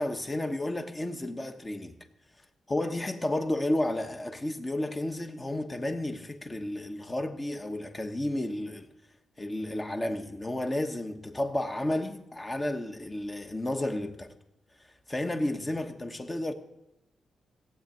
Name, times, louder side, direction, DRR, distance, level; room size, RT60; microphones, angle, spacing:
voice 1, 0.0-2.0 2.7-8.9 9.4-14.3 15.1-16.5, left 1 dB, 20° left, 1.1 m, -32 dB
16.0 x 8.4 x 7.7 m
cardioid pair, 115°, 0 cm